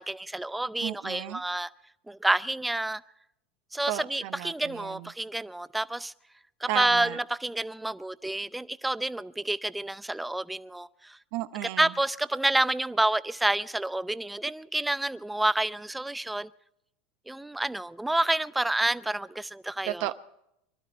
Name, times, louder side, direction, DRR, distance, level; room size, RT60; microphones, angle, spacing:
voice 1, 0.0-1.7 2.1-3.0 3.7-6.1 6.6-11.2 11.8-16.5 17.3-20.1, right 1 dB, 5° right, 0.6 m, -29 dB
voice 2, 0.8-1.4 3.9-5.1 6.7-7.2 11.3-11.9 19.8-20.2, right 15 dB, 65° right, 0.8 m, -34 dB
24.0 x 12.5 x 4.4 m
hypercardioid pair, 90°, 0 cm